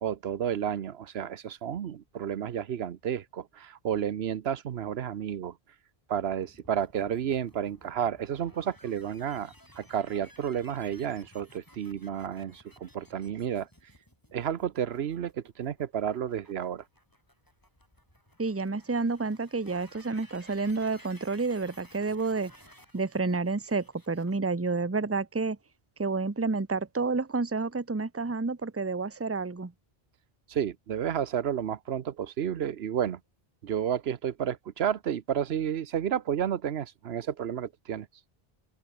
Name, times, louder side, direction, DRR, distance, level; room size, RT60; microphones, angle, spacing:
voice 1, 0.0-5.6 6.1-13.7 14.3-16.8 30.5-33.2 33.6-38.1, right 9 dB, 85° right, 1.1 m, -31 dB
sound 1, 6.3-24.4, equal, 20° left, 7.6 m, -57 dB
voice 2, 18.4-22.5 22.9-25.6 26.0-29.7, right 3 dB, 15° right, 0.8 m, -29 dB
omnidirectional pair, 1.0 m